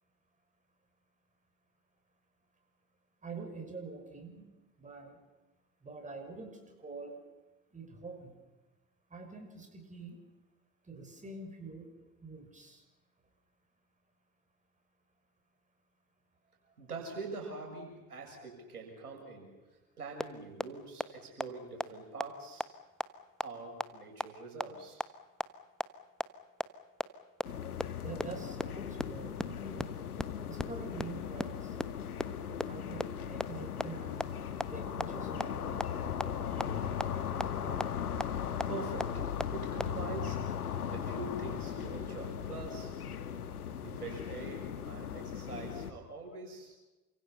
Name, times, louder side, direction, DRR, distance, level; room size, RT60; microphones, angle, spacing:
voice 1, 3.2-4.5 4.8-5.2 5.8-7.2 7.7-8.4 9.1-10.2 10.8-12.8 28.0-30.0 30.5-31.8 32.7-34.2 34.7-35.9 36.9-37.5, right 3 dB, 15° right, 4 dB, 6.3 m, -46 dB
voice 2, 16.8-19.5 20.0-22.7 23.4-25.0 37.7-38.0 38.7-40.5 40.9-42.9 43.8-46.7, right 3 dB, 80° right, 1 dB, 7.1 m, -44 dB
sound 1, 20.2-20.3 20.6-20.7 21.0-21.1 21.4-21.5 21.8-21.9 22.2-22.3 22.6-22.7 23.0-23.1 23.4-23.5 23.8-23.9 24.2-24.3 24.6-24.7 25.0-25.1 25.4-25.5 25.8-25.9 26.2-26.3 26.6-26.7 27.0-27.1 27.4-27.5 27.8-27.9 28.2-28.3 28.6-28.7 29.0-29.1 29.4-29.5 29.8-29.9 30.2-30.3 30.6-30.7 31.0-31.1 31.4-31.5 31.8-31.9 32.2-32.3 32.6-32.7 33.0-33.1 33.4-33.5 33.8-33.9 34.2-34.3 34.6-34.7 35.0-35.1 35.4-35.5 35.8-35.9 36.2-36.3 36.6-36.7 37.0-37.1 37.4-37.5 37.8-37.9 38.2-38.3 38.6-38.7 39.0-39.1 39.4-39.5 39.8-39.9, equal, ahead, 1.2 m, -31 dB
sound 2, 27.4-45.9, left 8 dB, 75° left, 1.6 m, -38 dB
29.5 x 26.0 x 5.8 m, 1.1 s
figure-of-eight pair, 70°, 45 cm